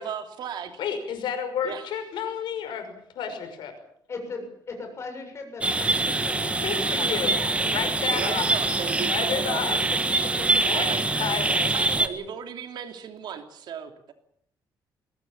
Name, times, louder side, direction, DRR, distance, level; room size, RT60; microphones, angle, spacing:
voice 1, 0.0-0.7 1.6-1.9 8.1-9.6 10.7-11.0 11.7-14.1, right 8 dB, 70° right, 6 dB, 3.1 m, -35 dB
voice 2, 0.8-3.7 6.6-7.4 7.7-8.5 9.1-9.8 10.6-11.7, left 7 dB, 80° left, 7 dB, 5.7 m, -31 dB
voice 3, 4.1-7.8 8.4-8.9 9.2-9.8 10.2-10.5 10.9-11.3, left 3 dB, 35° left, 4 dB, 7.2 m, -40 dB
sound 1, 5.6-12.1, right 2 dB, 15° right, 1.6 m, -24 dB
22.0 x 18.0 x 8.8 m, 0.69 s
cardioid pair, 140°, 8 cm